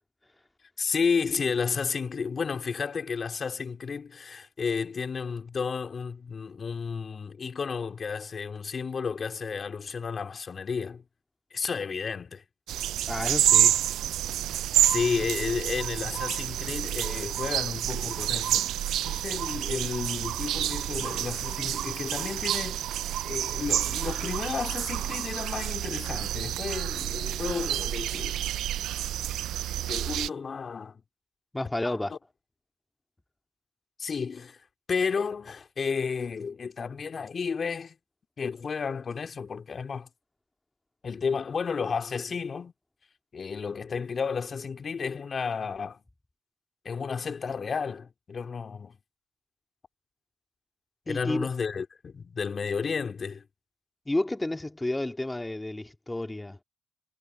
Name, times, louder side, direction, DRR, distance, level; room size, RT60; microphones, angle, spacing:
voice 1, 0.8-11.0 11.5-12.4 14.8-18.7 19.0-22.8 23.2-28.4 29.8-31.0 31.8-32.2 34.0-34.6 34.9-37.9 38.4-40.1 41.0-42.7 43.3-46.0 46.8-49.0 51.1-53.4, left 5 dB, 45° left, 3.0 m, -32 dB
sound 1, 12.7-30.3, right 12 dB, 75° right, 0.4 m, -29 dB
voice 2, 13.1-13.8 31.5-32.2 51.1-51.5 54.1-56.6, left 1 dB, 15° left, 2.3 m, -31 dB
supercardioid pair, 60°, 0 cm